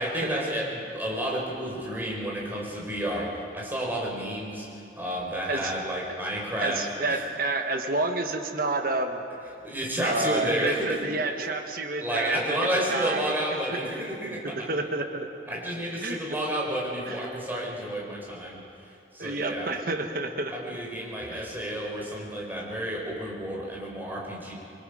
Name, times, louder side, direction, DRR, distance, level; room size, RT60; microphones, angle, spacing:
voice 1, 0.0-6.8 7.1-7.2 9.6-11.0 12.0-14.7 15.5-18.6 19.1-19.7 20.5-24.5, right 1 dB, 10° right, -3 dB, 4.5 m, -31 dB
voice 2, 6.6-9.2 10.0-12.6 12.9-13.8 14.4-15.3 16.0-16.2 17.1-17.2 19.2-20.8 21.3-21.5, right 2 dB, 50° right, 5 dB, 1.3 m, -29 dB
26.5 x 22.0 x 5.0 m, 2.5 s
head